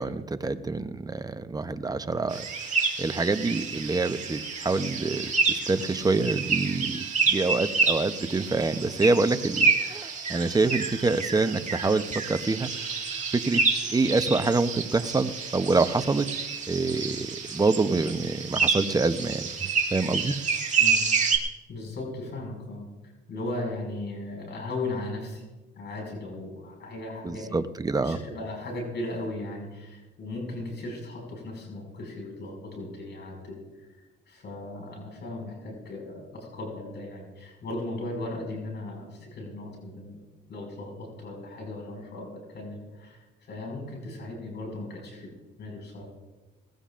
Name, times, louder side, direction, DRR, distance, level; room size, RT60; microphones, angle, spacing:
voice 1, 0.0-13.6 13.9-16.3 16.7-20.3 27.2-28.2, right 3 dB, 20° right, 11 dB, 0.7 m, -26 dB
sound 1, 2.3-21.4, right 5 dB, 35° right, 2.0 m, -28 dB
voice 2, 20.8-21.1 21.7-25.4 25.8-27.6 28.0-40.2 40.5-45.3 45.6-46.0, left 2 dB, 60° left, 0 dB, 5.8 m, -37 dB
19.5 x 16.0 x 2.5 m, 1.2 s
cardioid pair, 90°, 20 cm